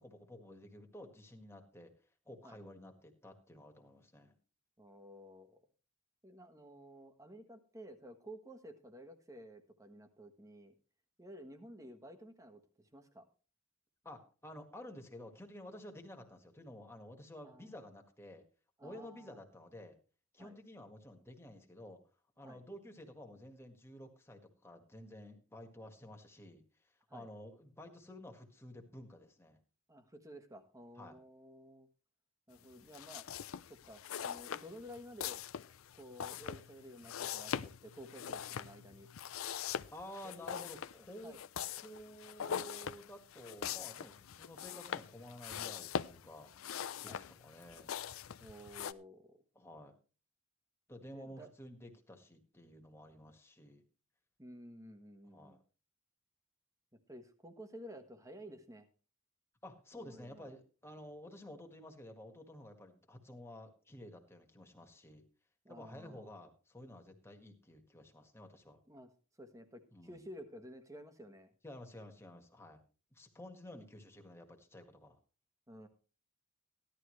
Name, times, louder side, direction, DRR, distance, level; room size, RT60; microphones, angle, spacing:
voice 1, 0.0-1.9 2.2-4.3 14.0-18.4 18.8-19.9 20.3-22.0 22.4-29.6 31.0-31.2 39.9-41.4 41.8-46.5 47.0-47.9 49.5-49.9 50.9-53.8 55.2-55.6 59.6-65.2 65.7-68.8 69.9-70.2 71.6-72.8 73.1-75.2, left 1 dB, 10° left, 3 dB, 1.7 m, -52 dB
voice 2, 4.8-5.6 6.2-10.7 11.2-13.2 17.4-17.7 18.8-19.4 20.4-20.6 22.4-22.6 27.1-27.3 29.9-31.9 32.5-33.3 33.7-35.4 35.9-39.1 40.2-40.6 40.9-41.4 47.0-47.2 48.4-49.4 51.1-51.5 54.4-55.6 56.9-58.9 60.0-60.5 65.6-66.4 68.9-69.1 69.4-71.5 75.7-75.9, equal, 15° right, 8 dB, 1.3 m, -53 dB
sound 1, 32.9-48.9, left 8 dB, 70° left, 0.5 m, -42 dB
15.5 x 11.5 x 3.2 m, 0.36 s
head